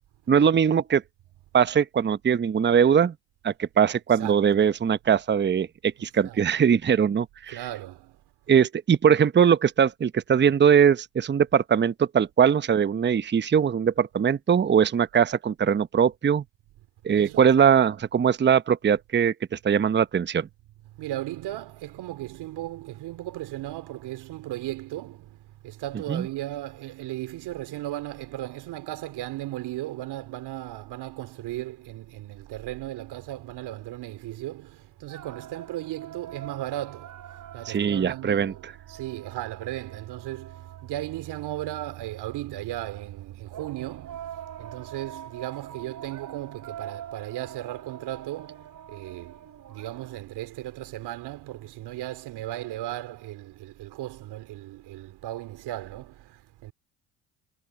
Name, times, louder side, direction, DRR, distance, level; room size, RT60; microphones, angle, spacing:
voice 1, 0.3-1.0 1.5-3.1 3.4-7.6 8.5-16.4 17.0-20.5 26.1-26.2 37.7-38.7, right 7 dB, 25° right, 0.9 m, -21 dB
voice 2, 7.5-8.2 17.1-17.5 20.9-56.7, right 15 dB, 65° right, 2.9 m, -36 dB
sound 1, 35.1-41.3 43.5-50.2, right 10 dB, 50° right, 3.2 m, -44 dB
hypercardioid pair, 60°, 42 cm